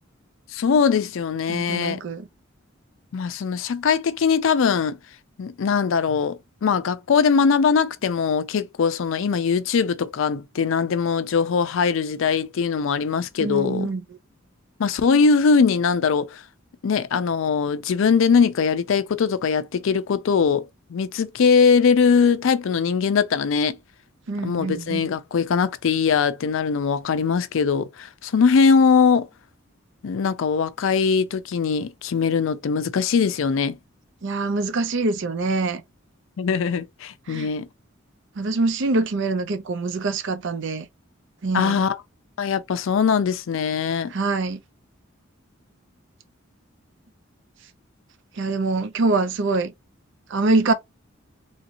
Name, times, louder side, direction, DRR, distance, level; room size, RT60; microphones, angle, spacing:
voice 1, 0.5-2.0 3.1-5.0 5.4-13.9 14.8-16.4 16.8-23.8 24.4-29.3 30.0-33.8 36.4-37.7 41.5-42.0 42.4-44.1, left 5 dB, 70° left, 0.4 m, -21 dB
voice 2, 1.5-2.3 13.4-14.0 24.3-25.1 34.2-35.8 37.3-37.5 38.4-40.9 41.4-41.8 44.1-44.6 48.3-49.7 50.3-50.7, right 3 dB, 65° right, 0.6 m, -24 dB
3.1 x 2.8 x 2.5 m
head